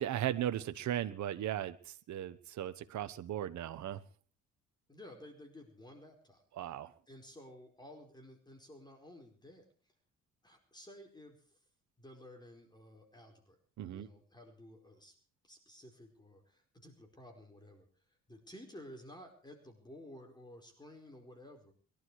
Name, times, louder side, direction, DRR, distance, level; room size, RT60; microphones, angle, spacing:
voice 1, 0.0-4.0 6.6-6.9 13.8-14.1, right 11 dB, 70° right, 10 dB, 1.2 m, -37 dB
voice 2, 4.9-6.7 7.1-9.6 10.4-11.6 12.0-13.6 13.9-15.1 15.4-21.7, left 1 dB, 15° left, 3 dB, 4.7 m, -54 dB
22.5 x 12.5 x 4.8 m, 0.42 s
cardioid pair, 90°, 30 cm